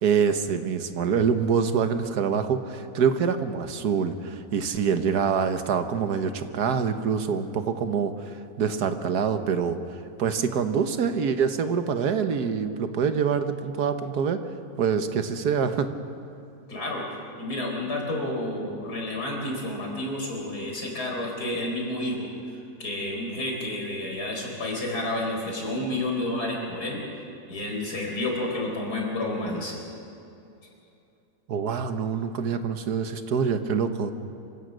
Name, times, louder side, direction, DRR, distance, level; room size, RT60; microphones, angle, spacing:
voice 1, 0.0-14.4 14.8-15.9 31.5-34.1, right 6 dB, 85° right, 9 dB, 1.6 m, -25 dB
voice 2, 16.7-17.0 17.4-27.0 27.5-29.8, left 1 dB, 80° left, 0 dB, 4.7 m, -30 dB
26.0 x 16.0 x 6.4 m, 2.7 s
omnidirectional pair, 1.7 m